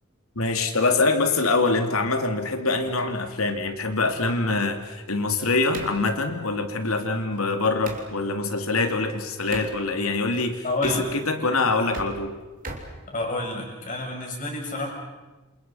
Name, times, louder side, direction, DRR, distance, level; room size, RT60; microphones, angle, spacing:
voice 1, 0.3-12.4, left 3 dB, 85° left, 6 dB, 2.9 m, -24 dB
sound 1, 2.8-8.1 9.5-9.8 10.7-11.4 11.7-13.7, right 2 dB, 40° right, 3.4 m, -41 dB
voice 2, 10.6-11.1 13.1-14.9, left 2 dB, 40° left, 0 dB, 7.1 m, -29 dB
28.5 x 27.0 x 5.8 m, 1.1 s
head